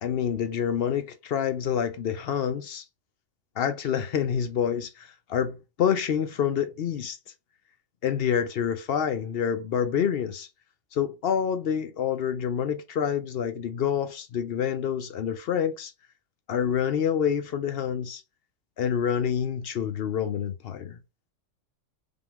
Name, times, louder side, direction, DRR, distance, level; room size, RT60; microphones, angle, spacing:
voice 1, 0.0-2.8 3.6-7.2 8.0-10.5 10.9-15.9 16.5-18.2 18.8-21.0, left 8 dB, 60° left, 0.7 m, -27 dB
5.1 x 2.4 x 3.6 m
omnidirectional pair, 1.3 m